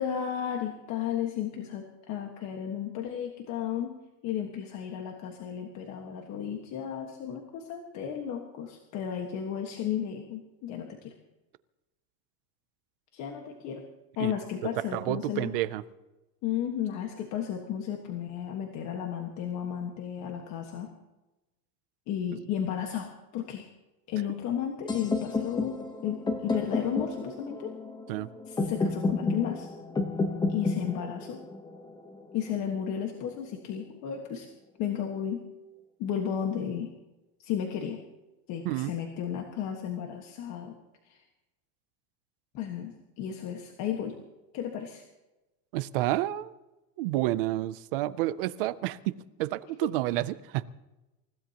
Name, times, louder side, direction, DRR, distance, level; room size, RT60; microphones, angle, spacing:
voice 1, 0.0-3.9 4.2-11.1 13.1-13.8 14.2-15.5 16.4-20.9 22.1-23.7 24.1-27.7 28.5-29.7 30.5-31.4 32.3-34.5 34.8-35.4 36.0-36.9 37.4-38.0 38.5-40.8 41.0-41.2 42.5-44.2 44.5-45.0, left 9 dB, 35° left, 3 dB, 1.5 m, -33 dB
voice 2, 14.9-15.8 28.1-28.3 38.6-38.9 45.7-46.5 47.0-50.7, right 16 dB, 35° right, 15 dB, 0.4 m, -30 dB
sound 1, 24.9-32.8, left 3 dB, 10° left, 0.9 m, -31 dB
28.5 x 16.0 x 2.9 m, 1.0 s
supercardioid pair, 170°, 50 cm